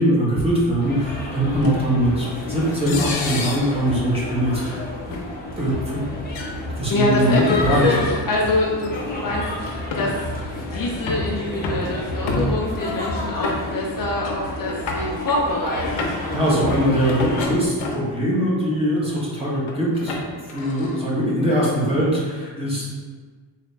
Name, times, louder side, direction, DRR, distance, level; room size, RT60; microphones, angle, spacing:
voice 1, 0.0-5.2 5.6-6.0 6.8-7.8 15.9-20.2 20.5-22.9, equal, 15° right, -7 dB, 1.2 m, -22 dB
sound 1, 0.8-17.4, left 1 dB, 20° left, 0.8 m, -30 dB
sound 2, 1.6-1.7 2.9-3.7 4.6-4.7 5.1-5.2 6.3-6.5 7.2-7.6 8.8-8.9 9.7-10.1 10.7-11.3 11.6-11.9 12.3-12.8 13.4-14.0 14.2-14.4 14.6-15.4 15.8-16.3 17.1-18.1 18.7-19.1 19.7-21.0, left 2 dB, 80° left, 0.8 m, -29 dB
voice 2, 6.9-16.1, left 2 dB, 50° left, -2 dB, 0.6 m, -25 dB
4.0 x 2.8 x 3.3 m, 1.5 s
cardioid pair, 110°, 45 cm